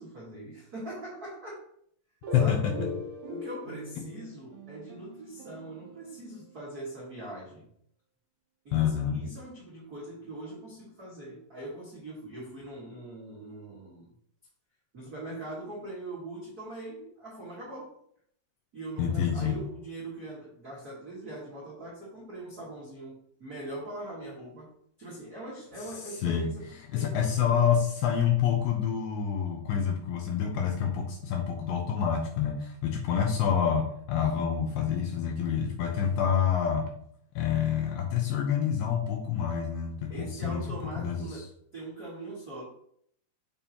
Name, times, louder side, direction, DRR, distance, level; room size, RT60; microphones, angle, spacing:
voice 1, 0.0-1.6 2.4-2.7 3.3-7.6 8.6-14.1 14.9-18.0 18.7-24.7 25.0-26.6 26.9-27.7 40.1-42.6, right 1 dB, 75° right, -7 dB, 0.8 m, -42 dB
sound 1, 2.2-6.8, left 1 dB, 60° right, 2.0 m, -40 dB
voice 2, 2.3-2.7 8.7-9.2 19.0-19.6 26.2-26.5 26.9-36.9 37.4-40.7 41.0-41.4, left 8 dB, 75° left, 2 dB, 2.2 m, -27 dB
6.9 x 5.4 x 2.9 m, 0.66 s
omnidirectional pair, 4.7 m